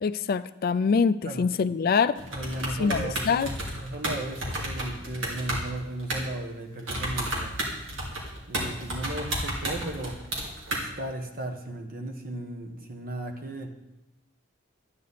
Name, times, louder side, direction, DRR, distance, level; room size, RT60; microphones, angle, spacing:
voice 1, 0.0-2.2 2.8-3.5, left 5 dB, 45° left, 13 dB, 0.3 m, -24 dB
sound 1, 2.2-6.5 6.8-10.8, right 1 dB, 65° right, 2.7 m, -32 dB
voice 2, 2.3-7.5 8.5-10.2 10.7-13.7, right 1 dB, 45° right, 3 dB, 1.3 m, -36 dB
11.5 x 9.6 x 4.2 m, 0.91 s
head